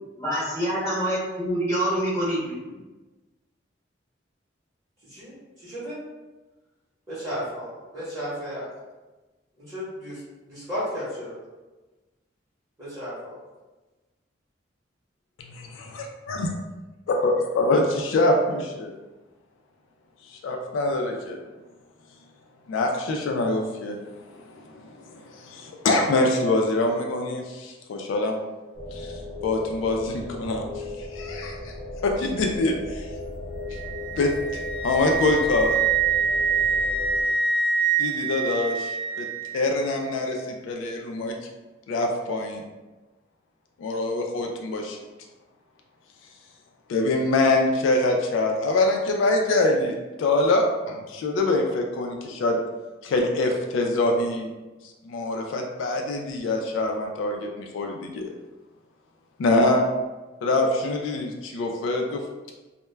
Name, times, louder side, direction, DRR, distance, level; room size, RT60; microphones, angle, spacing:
voice 1, 0.2-2.8, right 1 dB, 15° left, -10 dB, 0.8 m, -26 dB
voice 2, 5.0-6.0 7.1-8.6 9.6-10.2 10.5-11.4 12.8-13.4, equal, 15° right, -10 dB, 0.9 m, -34 dB
voice 3, 15.5-16.5 17.1-19.0 20.3-21.4 22.7-24.0 24.3-28.3 28.9-29.1 29.4-31.7 32.0-33.1 34.1-35.8 38.0-39.3 39.5-41.3 41.9-42.6 43.8-45.0 46.9-52.6 53.0-54.5 55.0-58.2 59.4-59.9 60.4-62.2, left 2 dB, 85° left, 2 dB, 0.3 m, -24 dB
sound 1, 28.7-37.2, left 1 dB, 80° right, 0.8 m, -36 dB
Wind instrument woodwind instrument, 33.7-39.7, right 5 dB, 50° right, 0.6 m, -25 dB
2.1 x 2.1 x 3.2 m, 1.2 s
head